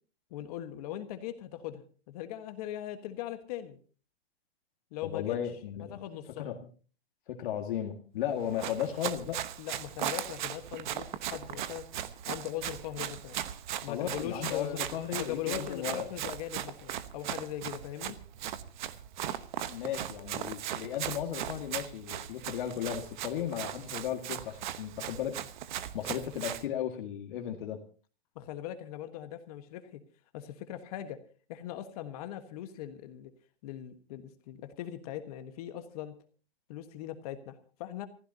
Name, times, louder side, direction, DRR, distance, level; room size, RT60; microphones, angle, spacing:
voice 1, 0.3-3.8 4.9-5.4 5.8-6.5 9.6-11.9 12.3-13.4 13.8-14.8 15.2-18.2 28.3-30.0 30.3-31.2 31.5-33.3 33.6-36.1 36.7-38.1, left 11 dB, 35° left, 8 dB, 1.4 m, -40 dB
voice 2, 5.0-6.0 6.4-6.6 7.3-9.4 13.9-16.1 19.7-25.4 25.9-27.8, left 10 dB, 55° left, 3 dB, 2.0 m, -35 dB
Run, 8.4-26.7, right 11 dB, 50° right, 1.1 m, -38 dB
28.0 x 15.0 x 2.8 m, 0.38 s
hypercardioid pair, 160°, 31 cm